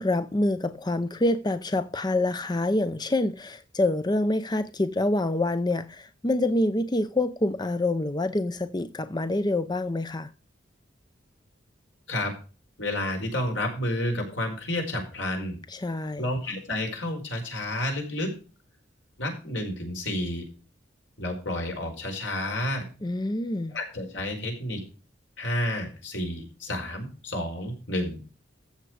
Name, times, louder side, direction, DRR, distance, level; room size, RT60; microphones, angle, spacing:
voice 1, 0.0-10.3 15.7-16.3 23.0-23.7, left 2 dB, 20° left, 0.6 m, -26 dB
voice 2, 12.8-15.6 16.2-18.3 19.2-20.5 21.2-22.8 23.7-24.8 25.4-28.2, left 1 dB, 75° left, 4.9 m, -30 dB
14.5 x 6.6 x 4.8 m
head